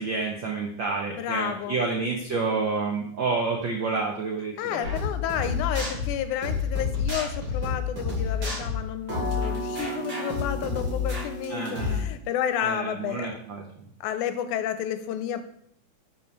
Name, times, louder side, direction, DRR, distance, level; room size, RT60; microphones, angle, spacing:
voice 1, 0.0-4.9 11.5-12.0 12.6-13.9, right 4 dB, 80° right, 1 dB, 1.0 m, -29 dB
voice 2, 1.1-1.8 4.6-13.4 14.0-15.4, left 10 dB, 90° left, 10 dB, 2.1 m, -31 dB
sound 1, 4.8-12.0, left 4 dB, 40° right, 2.9 m, -29 dB
11.0 x 5.8 x 3.2 m, 0.67 s
omnidirectional pair, 3.5 m